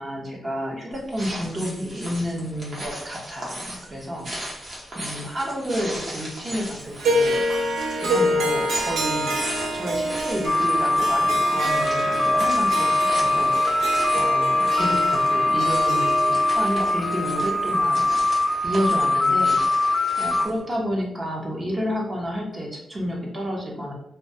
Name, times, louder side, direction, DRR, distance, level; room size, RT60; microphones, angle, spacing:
voice 1, 0.0-4.6 4.9-7.4 8.0-9.3 9.7-13.9 14.1-18.0 18.6-19.8 20.2-23.9, equal, 30° right, -2 dB, 0.6 m, -30 dB
sound 1, 0.9-20.6, right 1 dB, 50° right, 0.8 m, -38 dB
Harp, 7.0-18.3, right 1 dB, 90° right, 0.3 m, -27 dB
sound 2, 10.5-20.5, left 2 dB, 25° left, 0.4 m, -22 dB
2.2 x 2.2 x 2.6 m, 0.77 s
cardioid pair, 100°, 0 cm